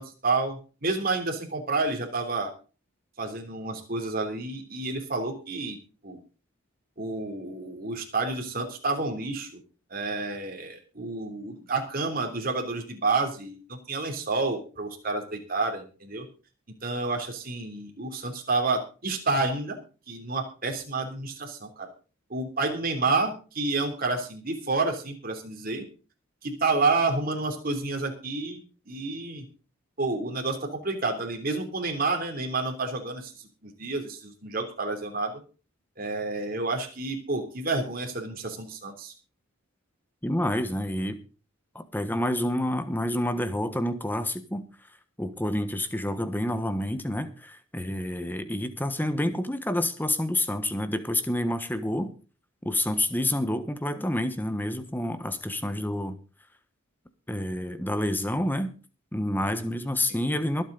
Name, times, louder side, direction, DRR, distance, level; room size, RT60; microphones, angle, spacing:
voice 1, 0.0-2.5 3.2-5.8 6.0-6.2 7.0-9.5 9.9-16.3 16.8-19.8 20.1-21.9 22.3-25.8 26.4-28.6 28.9-29.4 30.0-35.4 36.0-39.1 60.1-60.3, right 3 dB, 45° right, 3.2 m, -29 dB
voice 2, 40.2-41.2 41.7-44.6 45.2-52.1 52.6-56.2 57.3-58.7 59.1-60.6, left 1 dB, 10° left, 1.2 m, -28 dB
23.0 x 8.1 x 4.0 m
head